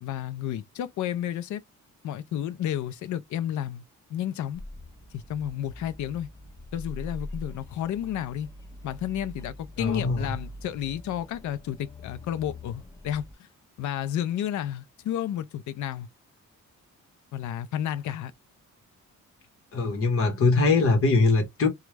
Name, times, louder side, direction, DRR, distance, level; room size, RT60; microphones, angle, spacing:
voice 1, 0.0-1.6 2.0-3.8 4.1-4.6 5.1-6.3 6.7-8.5 8.8-13.5 13.8-16.1 17.3-18.3, left 11 dB, 70° left, 0.5 m, -31 dB
sound 1, 4.5-13.3, left 1 dB, 10° left, 0.4 m, -43 dB
voice 2, 9.8-10.3 19.7-21.7, left 3 dB, 45° left, 1.2 m, -22 dB
3.0 x 2.3 x 3.2 m
wide cardioid pair, 170°, 31 cm